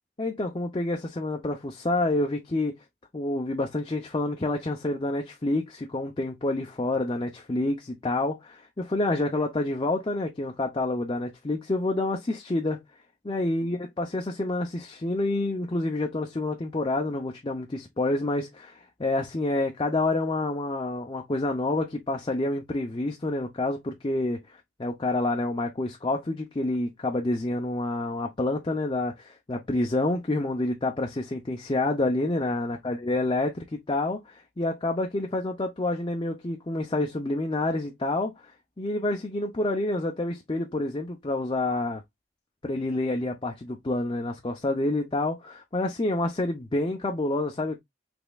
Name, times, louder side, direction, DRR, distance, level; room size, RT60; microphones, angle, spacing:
voice 1, 0.2-2.7 3.1-12.8 13.2-38.5 38.8-42.0 42.6-47.8, left 2 dB, 25° left, 0.6 m, -28 dB
5.2 x 3.4 x 2.3 m
head